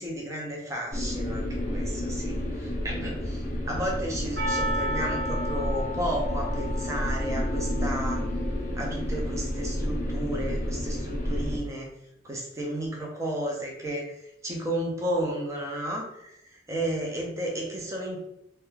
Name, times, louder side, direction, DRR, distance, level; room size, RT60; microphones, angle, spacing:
voice 1, 0.0-8.2 8.8-11.9 12.2-18.3, right 1 dB, 15° right, -1 dB, 0.4 m, -33 dB
sound 1, 0.9-11.6, left 1 dB, 45° left, 0.5 m, -30 dB
Percussion, 4.4-8.7, equal, 60° right, 0.8 m, -34 dB
2.3 x 2.1 x 3.0 m, 0.81 s
head